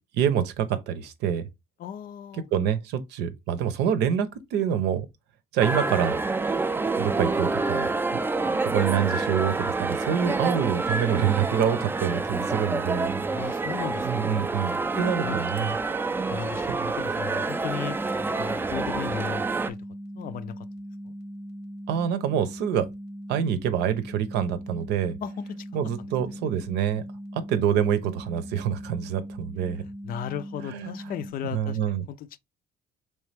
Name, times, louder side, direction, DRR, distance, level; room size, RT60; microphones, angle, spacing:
voice 1, 0.1-1.5 2.5-5.1 5.5-6.2 7.0-7.9 8.4-13.2 14.0-15.7 21.9-22.9 23.3-25.2 25.7-27.0 27.3-29.8 30.7-30.9 31.5-32.0, right 9 dB, 85° right, 0.7 m, -26 dB
voice 2, 1.8-2.4 13.3-15.8 16.3-18.0 18.3-19.8 20.2-20.7 21.1-21.2 25.2-25.7 26.3-26.4 29.8-32.3, left 9 dB, 60° left, 0.4 m, -36 dB
sound 1, 5.6-19.7, right 3 dB, 15° right, 0.3 m, -28 dB
sound 2, 17.7-31.3, equal, 90° left, 1.1 m, -40 dB
4.2 x 3.3 x 3.3 m
cardioid pair, 110°, 17 cm